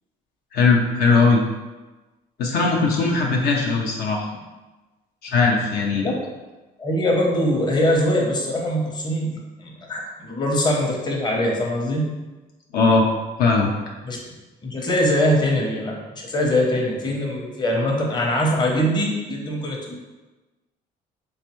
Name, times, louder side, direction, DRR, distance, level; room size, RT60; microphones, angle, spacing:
voice 1, 0.5-1.4 2.4-4.2 5.2-6.1 12.7-13.1 13.4-13.7, left 4 dB, 70° left, -1 dB, 0.6 m, -19 dB
voice 2, 6.8-12.1 14.1-14.2 14.6-20.0, left 1 dB, 25° left, -1 dB, 0.8 m, -22 dB
3.4 x 3.2 x 3.0 m, 1.2 s
cardioid pair, 110°, 17 cm